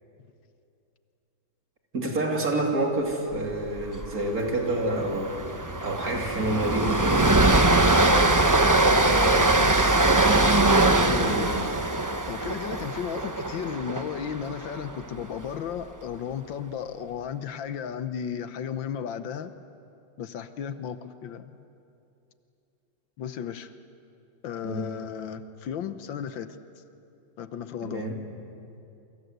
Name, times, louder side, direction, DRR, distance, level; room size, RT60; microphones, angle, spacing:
voice 1, 1.9-5.4 5.8-7.3 11.3-11.5 24.6-24.9 27.8-28.2, right 2 dB, 45° right, 1 dB, 3.5 m, -28 dB
Train, 3.8-4.1 4.3-4.5 4.9-15.0, right 2 dB, 25° right, 0.4 m, -22 dB
voice 2, 9.0-10.2 11.0-11.5 12.3-19.5 20.2-21.6 23.2-23.7 24.4-26.6 27.4-28.1, left 8 dB, 75° left, 11 dB, 1.6 m, -34 dB
28.5 x 25.5 x 8.1 m, 2.7 s
omnidirectional pair, 2.1 m